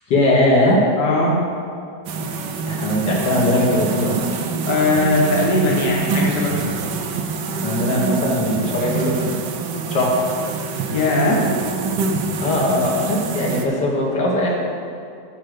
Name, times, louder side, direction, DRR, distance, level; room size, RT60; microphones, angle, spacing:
voice 1, 0.1-0.8 2.7-4.2 7.6-9.4 9.9-10.2 12.4-14.5, left 1 dB, 70° left, -3 dB, 1.9 m, -19 dB
voice 2, 1.0-1.4 4.7-6.6 10.9-11.5, left 1 dB, 45° left, -3 dB, 1.6 m, -19 dB
sound 1, 2.1-13.7, right 4 dB, 75° right, 1.4 m, -25 dB
10.0 x 4.8 x 6.6 m, 2.4 s
omnidirectional pair, 2.0 m